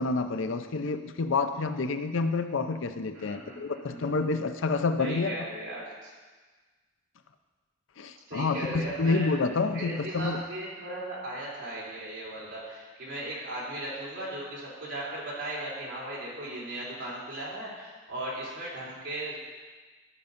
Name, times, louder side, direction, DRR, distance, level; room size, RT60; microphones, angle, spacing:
voice 1, 0.0-5.3 8.0-10.4, left 3 dB, 75° left, 9 dB, 0.6 m, -28 dB
voice 2, 3.1-4.2 5.0-6.1 8.3-9.4 9.6-19.4, right 1 dB, 65° right, -6 dB, 3.2 m, -37 dB
12.0 x 5.3 x 5.2 m, 1.4 s
head